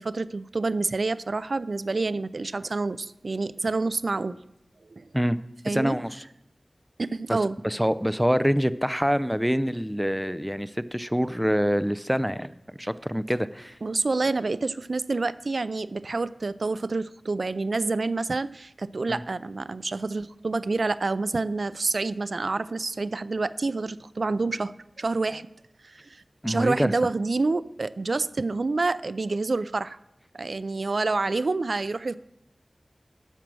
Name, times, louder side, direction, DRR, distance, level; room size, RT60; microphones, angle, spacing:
voice 1, 0.0-4.4 4.8-5.1 5.6-6.0 7.0-7.6 13.8-25.5 25.8-30.0 30.3-32.2, right 3 dB, 75° right, 16 dB, 0.3 m, -28 dB
voice 2, 5.7-6.2 7.3-7.4 7.6-12.5 12.8-13.8 19.1-19.2 26.4-26.9, equal, 5° right, 15 dB, 0.5 m, -25 dB
12.0 x 7.4 x 6.1 m, 0.83 s
wide cardioid pair, 60°, 0 cm